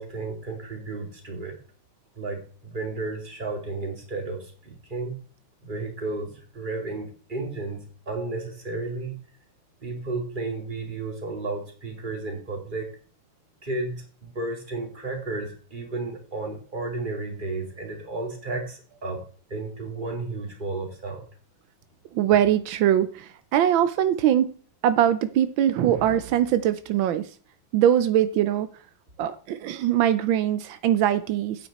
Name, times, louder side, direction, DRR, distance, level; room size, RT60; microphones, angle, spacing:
voice 1, 0.0-1.6 2.1-5.1 5.6-9.1 9.8-12.9 13.6-19.2 19.5-21.3, right 3 dB, 25° right, 2 dB, 2.6 m, -33 dB
voice 2, 22.1-24.5 24.8-27.2 27.7-28.7 29.2-31.7, right 11 dB, 85° right, 12 dB, 1.5 m, -22 dB
9.2 x 8.6 x 4.1 m, 0.41 s
omnidirectional pair, 2.1 m